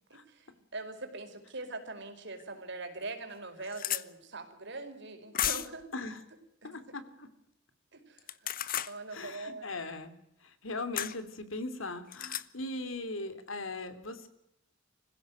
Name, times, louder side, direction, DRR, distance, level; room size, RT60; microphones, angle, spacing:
voice 1, 0.1-5.9 6.6-6.7 7.9-8.4 8.8-9.7, right 3 dB, 60° right, 5 dB, 4.9 m, -42 dB
sound 1, 2.4-2.5 3.0-3.1 3.3-4.0 5.3-5.8 8.2-8.9 11.0-11.2 12.1-12.4, left 11 dB, 45° left, 1.0 m, -33 dB
voice 2, 5.9-6.2 6.6-7.3 9.1-10.1 10.4-14.3, left 2 dB, 90° left, 11 dB, 3.1 m, -39 dB
25.5 x 16.0 x 9.3 m, 0.81 s
head